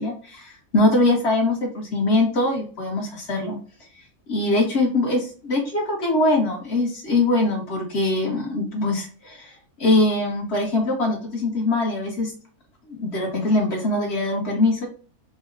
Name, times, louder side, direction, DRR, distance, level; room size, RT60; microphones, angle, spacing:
voice 1, 0.0-3.6 4.3-9.5 9.8-12.3 12.9-14.9, left 2 dB, 50° left, 0 dB, 1.4 m, -22 dB
4.1 x 2.2 x 3.8 m, 0.39 s
omnidirectional pair, 1.6 m